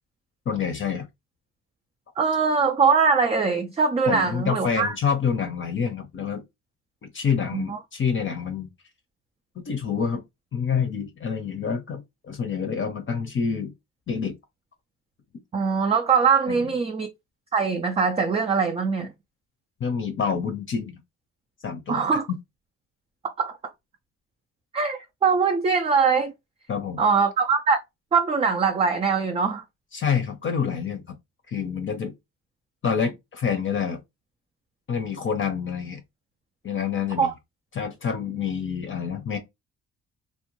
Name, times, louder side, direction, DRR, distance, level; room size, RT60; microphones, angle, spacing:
voice 1, 0.5-1.1 4.1-6.4 7.0-8.7 9.7-10.2 10.5-12.0 12.3-13.7 14.1-14.4 16.5-16.7 19.8-21.0 21.6-22.0 26.7-27.0 29.9-31.1 31.5-32.1 32.8-34.0 34.9-36.0 36.6-37.3 37.8-39.4, left 6 dB, 40° left, 0.6 m, -27 dB
voice 2, 2.2-4.9 7.5-7.8 15.5-17.1 17.5-19.1 21.9-22.3 23.2-23.6 24.7-26.3 27.0-27.8 28.1-29.6 37.2-37.3, right 5 dB, 20° right, 0.3 m, -22 dB
2.5 x 2.2 x 2.9 m
cardioid pair, 90°, 30 cm